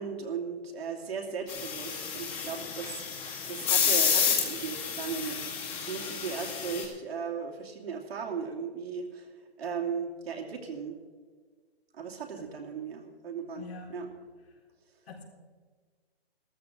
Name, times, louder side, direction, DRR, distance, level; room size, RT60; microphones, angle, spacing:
voice 1, 0.0-9.3 9.6-11.0 11.9-14.1, right 6 dB, 65° right, 1 dB, 2.7 m, -37 dB
sound 1, 1.5-6.8, left 7 dB, 15° left, 2.1 m, -30 dB
voice 2, 13.5-13.9 15.1-15.2, left 4 dB, 65° left, -1 dB, 3.7 m, -44 dB
15.0 x 14.0 x 3.9 m, 1.5 s
hypercardioid pair, 155°, 32 cm